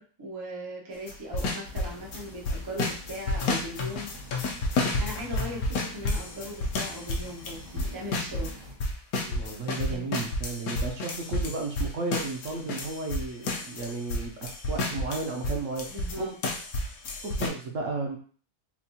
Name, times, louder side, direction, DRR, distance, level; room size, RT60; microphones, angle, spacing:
voice 1, 0.0-4.1 5.0-8.5 9.9-10.2 15.9-16.3, equal, 30° right, -3 dB, 0.4 m, -39 dB
sound 1, 1.1-2.2 2.5-8.5 8.8-16.1 16.4-17.5, left 2 dB, 70° left, 1.1 m, -30 dB
sound 2, 1.6-8.7, left 1 dB, 80° right, 2.0 m, -47 dB
voice 2, 9.2-16.3 17.2-18.2, right 3 dB, 60° right, 0 dB, 0.9 m, -33 dB
4.3 x 2.3 x 2.7 m, 0.43 s
omnidirectional pair, 1.7 m